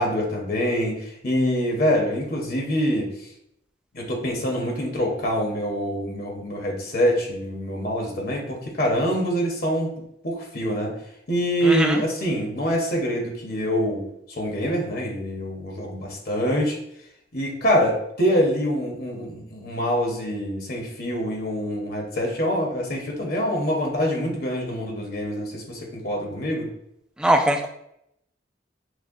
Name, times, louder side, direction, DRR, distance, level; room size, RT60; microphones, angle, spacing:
voice 1, 0.0-3.3 3.9-9.9 10.2-10.9 11.3-16.8 17.3-26.7, equal, 55° left, 0 dB, 0.9 m, -25 dB
voice 2, 27.2-27.7, right 1 dB, 5° right, 3 dB, 0.3 m, -20 dB
6.2 x 2.2 x 2.5 m, 0.77 s
head